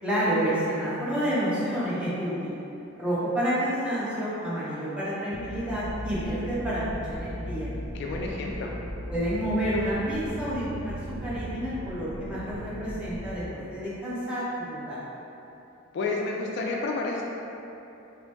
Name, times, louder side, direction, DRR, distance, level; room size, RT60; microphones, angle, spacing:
voice 1, 0.0-2.6 3.0-7.7 9.1-15.0, equal, 5° right, -10 dB, 0.9 m, -29 dB
Suspense Pad and Bass Loop, 5.3-13.3, equal, 40° right, 0.5 m, -37 dB
voice 2, 7.9-8.7 15.9-17.2, left 3 dB, 60° left, -1 dB, 0.3 m, -30 dB
3.0 x 3.0 x 3.4 m, 2.9 s
head